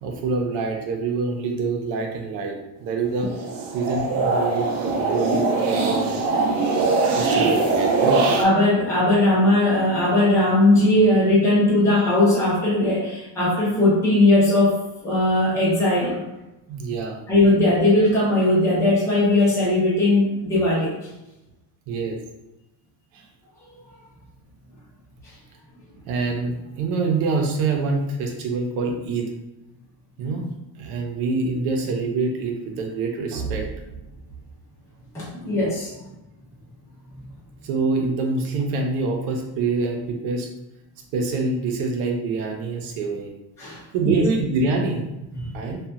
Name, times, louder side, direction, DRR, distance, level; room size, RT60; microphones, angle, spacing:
voice 1, 0.0-3.3 3.7-6.2 7.2-8.3 16.7-17.2 21.9-22.2 23.1-23.2 26.1-29.3 30.2-30.5 30.8-34.0 37.6-40.5 41.1-43.3 43.9-45.8, right 4 dB, 85° right, 2 dB, 0.8 m, -26 dB
sound 1, 3.2-8.4, right 3 dB, 55° right, 0.6 m, -21 dB
voice 2, 8.4-16.2 17.3-21.0 35.1-35.9 43.6-44.2, left 1 dB, 5° left, -8 dB, 0.6 m, -19 dB
2.7 x 2.4 x 2.4 m, 0.97 s
cardioid pair, 145°, 48 cm